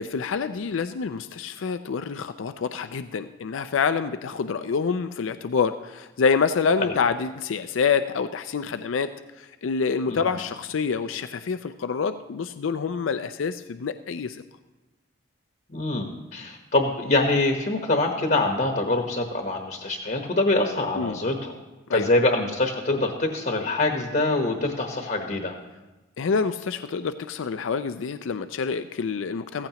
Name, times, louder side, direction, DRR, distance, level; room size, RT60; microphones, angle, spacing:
voice 1, 0.0-9.1 9.4-14.4 21.0-21.2 21.9-22.1 26.2-29.7, left 5 dB, 85° left, 10 dB, 0.4 m, -27 dB
voice 2, 15.7-21.5 21.9-25.5, left 2 dB, 45° left, 3 dB, 1.1 m, -24 dB
15.5 x 15.0 x 2.9 m, 1.1 s
head